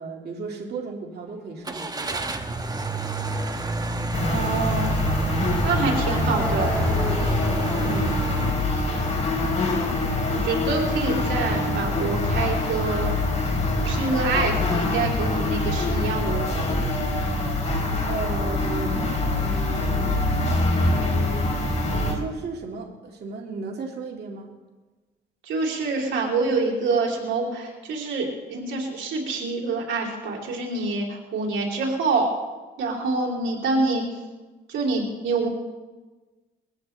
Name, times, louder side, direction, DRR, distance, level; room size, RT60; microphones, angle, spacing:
voice 1, 0.0-2.3 7.8-8.4 18.1-19.0 19.3-20.4 20.8-21.4 21.9-24.5, right 4 dB, 55° right, -1 dB, 2.2 m, -35 dB
Car / Engine starting, 1.6-8.5, right 4 dB, 20° right, 1.2 m, -30 dB
sound 1, 1.7-1.9 5.0-8.9 9.3-12.9, left 1 dB, 5° left, 3.7 m, -37 dB
sound 2, 4.1-22.1, left 2 dB, 35° left, 4.1 m, -24 dB
voice 2, 4.3-4.9 5.6-6.7 9.9-10.0 10.3-13.1 13.8-16.8 25.4-32.3 32.8-34.2 34.7-35.5, right 3 dB, 75° right, -1 dB, 3.3 m, -26 dB
21.5 x 15.0 x 3.3 m, 1.2 s
cardioid pair, 90°, 20 cm